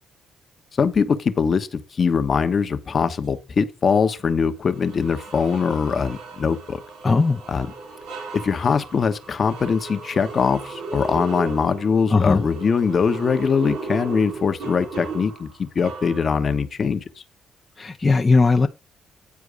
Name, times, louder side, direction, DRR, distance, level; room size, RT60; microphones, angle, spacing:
voice 1, 0.8-6.8 7.5-7.7 8.3-17.0, left 6 dB, 45° left, 1.1 m, -22 dB
sound 1, 3.9-4.1 4.7-16.6, right 3 dB, 85° right, 3.2 m, -35 dB
voice 2, 7.0-7.4 12.1-12.4 17.8-18.7, left 4 dB, 30° left, 0.7 m, -18 dB
9.7 x 4.6 x 5.0 m
cardioid pair, 80°, 0 cm